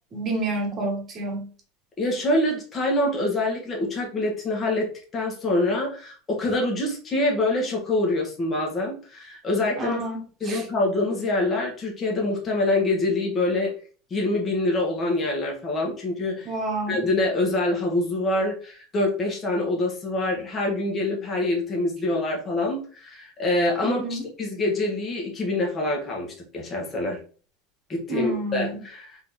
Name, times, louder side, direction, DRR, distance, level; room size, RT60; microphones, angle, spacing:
voice 1, 0.1-1.5 9.8-10.6 16.5-17.0 23.8-24.3 28.1-28.8, right 2 dB, 30° right, 1 dB, 1.7 m, -29 dB
voice 2, 2.0-10.0 10.4-13.7 14.1-16.5 16.9-27.2 27.9-29.0, left 2 dB, 25° left, -1 dB, 1.4 m, -25 dB
3.9 x 3.8 x 3.6 m, 0.41 s
supercardioid pair, 135°, 0 cm